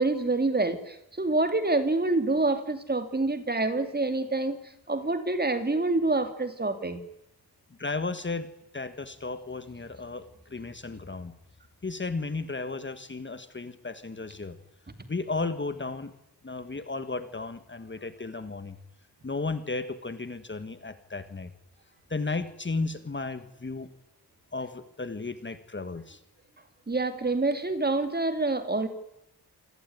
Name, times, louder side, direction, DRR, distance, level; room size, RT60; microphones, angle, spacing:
voice 1, 0.0-4.6 4.9-7.0 26.9-28.9, right 2 dB, 25° right, 9 dB, 2.7 m, -27 dB
voice 2, 7.8-8.5 8.7-11.3 11.8-14.6 15.1-16.1 16.4-18.8 19.2-21.5 22.1-23.9 24.5-26.2, left 3 dB, 30° left, 11 dB, 1.7 m, -34 dB
28.0 x 21.0 x 9.5 m, 0.81 s
wide cardioid pair, 145°, 40 cm